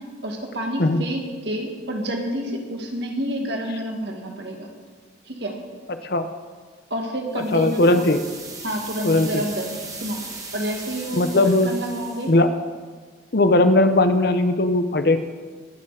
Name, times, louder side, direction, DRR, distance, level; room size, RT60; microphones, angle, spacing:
voice 1, 0.2-4.7 5.3-5.6 6.9-8.0 8.6-10.2 10.5-11.2 11.6-12.3, equal, 60° right, 2 dB, 2.0 m, -29 dB
sound 1, 7.3-12.4, right 3 dB, 15° right, 1.3 m, -38 dB
voice 2, 7.5-8.2 9.0-9.4 11.1-11.7 12.3-12.5 13.3-15.2, left 2 dB, 55° left, 9 dB, 0.8 m, -18 dB
21.0 x 7.1 x 4.9 m, 1.5 s
head